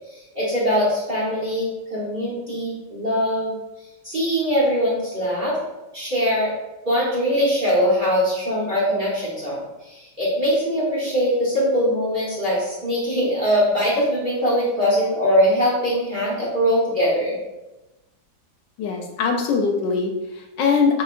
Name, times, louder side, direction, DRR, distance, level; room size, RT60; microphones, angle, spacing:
voice 1, 0.1-5.6 5.9-6.5 6.8-17.4, equal, 30° right, -8 dB, 1.1 m, -22 dB
voice 2, 18.8-21.0, left 5 dB, 80° left, 3 dB, 1.2 m, -22 dB
4.9 x 2.8 x 2.5 m, 1.0 s
omnidirectional pair, 2.0 m